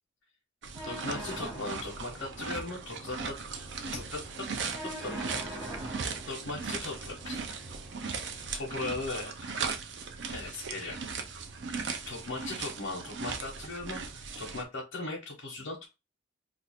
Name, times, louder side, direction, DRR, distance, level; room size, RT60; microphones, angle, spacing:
sound 1, 0.6-14.6, right 5 dB, 65° right, 0.6 m, -38 dB
voice 1, 0.8-3.4 3.9-4.5 4.8-5.1 5.4-5.8 6.3-7.4 8.6-9.7 10.3-11.0 12.1-15.9, left 2 dB, 80° left, -3 dB, 0.9 m, -38 dB
sound 2, 0.8-8.8, equal, ahead, 1.2 m, -45 dB
2.6 x 2.5 x 4.2 m, 0.25 s
head